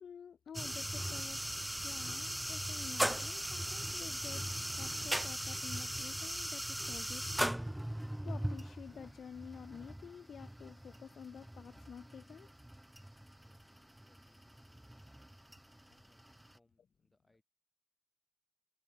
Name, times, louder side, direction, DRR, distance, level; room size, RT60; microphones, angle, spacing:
voice 1, 0.0-7.3 8.2-12.5, left 7 dB, 55° left, 0.5 m, -50 dB
sound 1, 0.5-16.6, right 1 dB, 5° right, 0.3 m, -39 dB
voice 2, 13.2-15.0 15.8-17.4, left 2 dB, 15° left, 5.9 m, -74 dB
cardioid pair, 105°, 0 cm